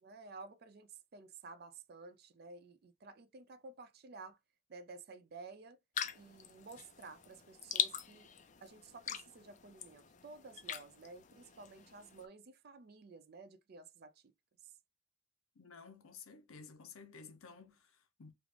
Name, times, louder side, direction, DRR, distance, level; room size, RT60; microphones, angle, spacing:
voice 1, 0.0-4.4 4.7-5.8 6.1-8.3 8.6-14.1, right 3 dB, 45° right, 0.4 m, -53 dB
sound 1, 6.0-12.3, left 9 dB, 35° left, 0.3 m, -42 dB
voice 2, 15.6-18.3, left 5 dB, 80° left, 0.7 m, -54 dB
3.2 x 2.5 x 3.2 m
head